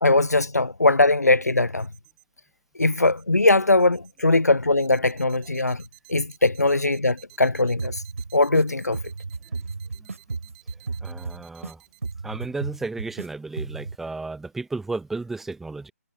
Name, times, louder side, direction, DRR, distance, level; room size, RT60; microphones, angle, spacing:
voice 1, 0.0-1.9 2.8-5.8 6.1-7.9 8.3-9.0, left 2 dB, 80° left, 0.6 m, -20 dB
sound 1, 1.8-2.2 2.8-3.2 3.8-4.2 4.8-12.1, right 40 dB or more, 20° right, 6.1 m, -52 dB
sound 2, 7.8-8.6 8.9-11.7 12.0-13.3 13.6-14.0, right 4 dB, 60° right, 7.0 m, -33 dB
voice 2, 11.0-11.8 12.2-15.9, right 3 dB, 5° right, 4.6 m, -33 dB
figure-of-eight pair, 145°, 9 cm